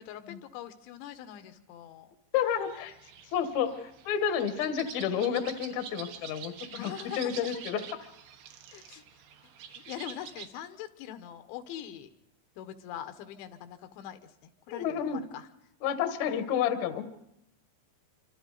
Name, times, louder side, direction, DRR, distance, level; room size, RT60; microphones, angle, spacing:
voice 1, 0.0-2.1 6.8-7.5 8.7-9.0 9.7-12.1 12.6-15.5, left 11 dB, 85° left, 9 dB, 3.4 m, -43 dB
voice 2, 2.3-2.9 3.3-7.9 14.7-15.2 15.8-17.0, left 8 dB, 70° left, 8 dB, 1.7 m, -30 dB
sound 1, 2.4-10.5, right 8 dB, 90° right, 3.7 m, -47 dB
26.5 x 25.0 x 4.0 m, 0.81 s
omnidirectional pair, 5.2 m